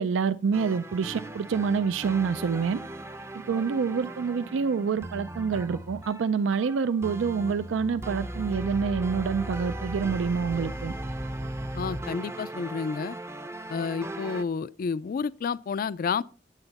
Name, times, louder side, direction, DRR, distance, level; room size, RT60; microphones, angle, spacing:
voice 1, 0.0-2.8 3.5-10.9, right 5 dB, 80° right, 0.4 m, -27 dB
sound 1, 0.5-14.4, right 1 dB, 15° right, 0.5 m, -37 dB
voice 2, 11.7-13.2 13.7-16.2, left 5 dB, 50° left, 0.3 m, -30 dB
9.0 x 8.8 x 4.1 m
head